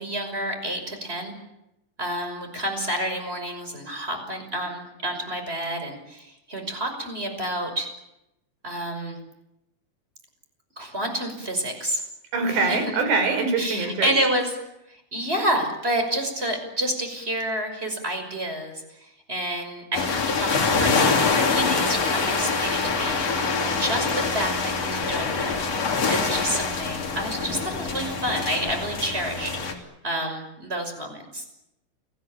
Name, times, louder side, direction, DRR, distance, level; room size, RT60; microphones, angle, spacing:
voice 1, 0.0-1.3 2.0-7.9 8.6-9.2 10.8-12.0 12.5-12.8 13.6-14.6 14.9-25.6 26.1-29.5 30.0-31.5, right 1 dB, 10° right, 6 dB, 5.6 m, -29 dB
voice 2, 12.3-14.1, right 4 dB, 65° right, 8 dB, 6.9 m, -23 dB
sound 1, 19.9-29.7, left 4 dB, 35° left, 3.6 m, -25 dB
29.0 x 19.5 x 8.9 m, 0.88 s
omnidirectional pair, 5.4 m